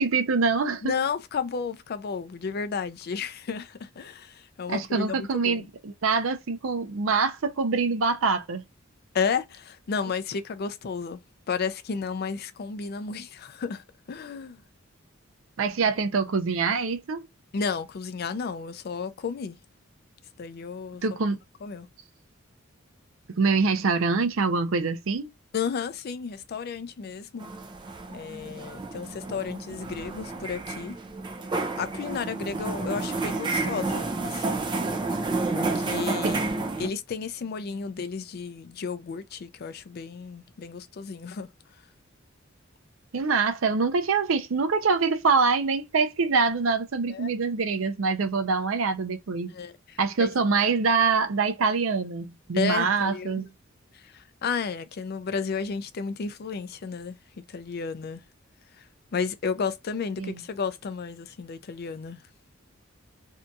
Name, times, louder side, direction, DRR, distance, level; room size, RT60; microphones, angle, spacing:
voice 1, 0.0-0.9 4.7-8.6 15.6-17.3 21.0-21.4 23.3-25.3 36.2-36.3 43.1-49.5 50.0-53.5 60.2-60.4, right 4 dB, 80° right, 0.5 m, -25 dB
voice 2, 0.8-5.6 9.1-11.2 11.5-14.6 17.5-19.6 20.4-21.0 21.6-21.9 25.5-27.5 28.1-31.0 31.8-34.7 35.5-36.5 36.8-41.5 47.1-47.3 49.5-50.3 52.5-53.4 53.9-58.2 58.8-58.9 59.1-62.2, left 5 dB, 50° left, 0.4 m, -32 dB
sound 1, 27.4-36.9, right 3 dB, 25° right, 0.4 m, -30 dB
2.7 x 2.3 x 2.6 m
head